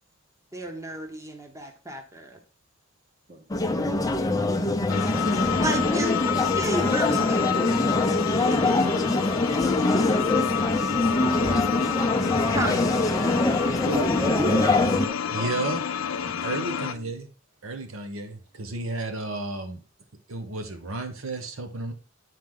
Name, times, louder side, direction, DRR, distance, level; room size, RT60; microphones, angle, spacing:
voice 1, 0.5-2.4 5.6-6.1 6.6-8.1 8.5-9.3 12.5-12.9, right 1 dB, 15° right, 4 dB, 1.1 m, -33 dB
sound 1, 3.5-15.1, left 2 dB, 20° left, 0.6 m, -24 dB
sound 2, 4.9-16.9, left 8 dB, 75° left, 0.4 m, -29 dB
voice 2, 11.2-11.7 12.2-17.1, right 1 dB, 40° right, 3 dB, 1.6 m, -35 dB
voice 3, 15.3-15.8 16.4-17.3 17.6-19.8 20.3-21.9, right 2 dB, 85° right, 7 dB, 1.0 m, -32 dB
9.3 x 4.7 x 3.8 m, 0.34 s
head